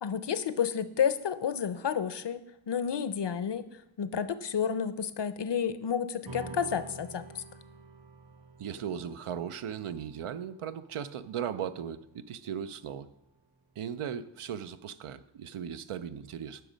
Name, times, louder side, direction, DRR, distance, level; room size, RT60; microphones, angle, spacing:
voice 1, 0.0-3.7 4.0-7.4, left 7 dB, 55° left, 14 dB, 0.6 m, -31 dB
sound 1, 6.3-13.0, right 3 dB, 60° right, 2.7 m, -49 dB
voice 2, 8.6-13.1 13.8-16.6, right 8 dB, 80° right, 12 dB, 0.6 m, -37 dB
9.3 x 6.3 x 5.1 m, 0.82 s
wide cardioid pair, 70°, 50 cm